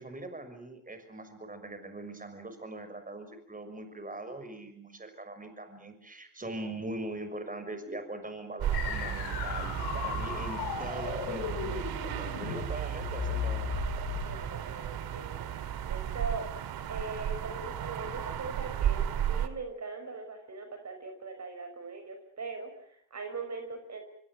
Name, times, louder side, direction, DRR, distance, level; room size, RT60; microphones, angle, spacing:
voice 1, 0.0-14.0, right 2 dB, 20° right, 9 dB, 6.4 m, -41 dB
sound 1, 8.6-19.5, right 10 dB, 65° right, 2.2 m, -34 dB
sound 2, 8.7-14.4, left 10 dB, 80° left, 5.2 m, -36 dB
voice 2, 14.2-16.5 16.9-24.0, right 3 dB, 45° right, 7 dB, 5.9 m, -41 dB
25.0 x 24.0 x 7.6 m, 0.69 s
supercardioid pair, 60°, 39 cm